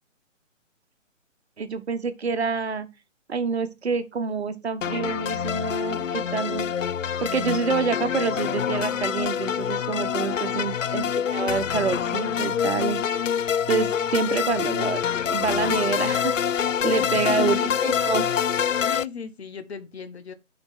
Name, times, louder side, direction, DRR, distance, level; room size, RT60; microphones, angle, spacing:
voice 1, 1.6-2.9 3.3-6.7 7.2-13.3 13.7-18.3, right 5 dB, 55° right, 1.4 m, -27 dB
sound 1, 4.8-19.0, left 8 dB, 80° left, 0.5 m, -26 dB
voice 2, 10.2-10.7 16.8-17.8 18.8-20.3, left 6 dB, 55° left, 1.5 m, -37 dB
9.2 x 5.3 x 4.3 m
figure-of-eight pair, 140°, 39 cm